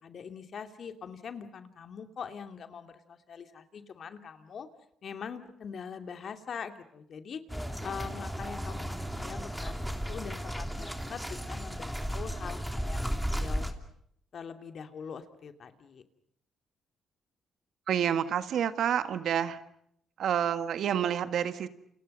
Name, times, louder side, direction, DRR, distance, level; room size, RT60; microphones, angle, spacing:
voice 1, 0.0-4.7 5.0-13.0 13.3-13.7 14.3-16.0, left 6 dB, 55° left, 8 dB, 2.6 m, -43 dB
sound 1, 7.5-13.7, equal, ahead, 3.1 m, -34 dB
voice 2, 17.9-19.6 20.2-21.7, right 9 dB, 70° right, 11 dB, 1.7 m, -28 dB
29.5 x 29.0 x 5.5 m, 0.72 s
cardioid pair, 90°, 0 cm